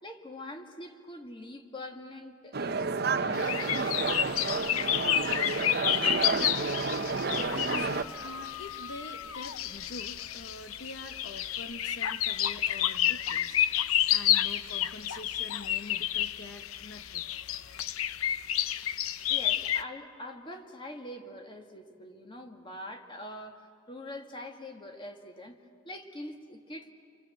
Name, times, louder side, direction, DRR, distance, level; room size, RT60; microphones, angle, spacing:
voice 1, 0.0-3.7 19.3-25.6 25.8-26.9, left 1 dB, 25° left, 4 dB, 1.8 m, -44 dB
sound 1, 2.5-8.0, right 4 dB, 50° right, 0.8 m, -30 dB
sound 2, 3.3-19.8, left 11 dB, 85° left, 0.6 m, -30 dB
voice 2, 7.7-17.3, left 2 dB, 55° left, 7 dB, 0.9 m, -45 dB
29.5 x 23.5 x 7.7 m, 2.3 s
head